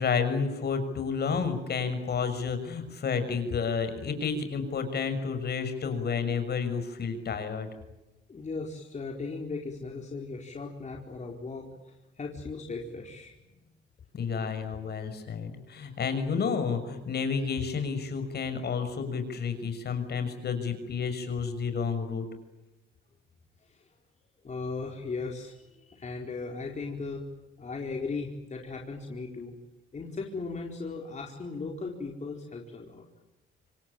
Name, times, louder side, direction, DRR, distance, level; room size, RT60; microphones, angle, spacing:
voice 1, 0.0-7.7 14.1-22.2, left 5 dB, 55° left, 9 dB, 6.4 m, -30 dB
voice 2, 8.3-13.4 23.7-23.8 24.4-27.2 27.6-29.5 29.9-33.0, left 4 dB, 35° left, 1 dB, 4.5 m, -37 dB
27.0 x 24.5 x 8.9 m, 1.0 s
cardioid pair, 90°, 20 cm